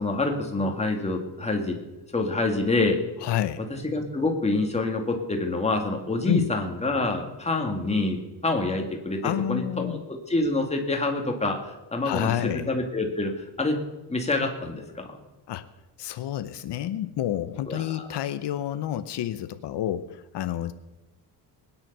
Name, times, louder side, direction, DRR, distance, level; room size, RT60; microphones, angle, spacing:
voice 1, 0.0-1.8 2.1-3.0 3.9-13.8 14.1-15.2 17.7-18.1, left 2 dB, 15° left, 2 dB, 2.0 m, -27 dB
voice 2, 3.2-3.7 6.3-6.5 9.2-10.0 12.0-12.7 15.5-15.7 16.0-20.7, left 12 dB, 75° left, 11 dB, 0.8 m, -29 dB
20.5 x 9.8 x 6.7 m, 1.1 s
wide cardioid pair, 165°, 42 cm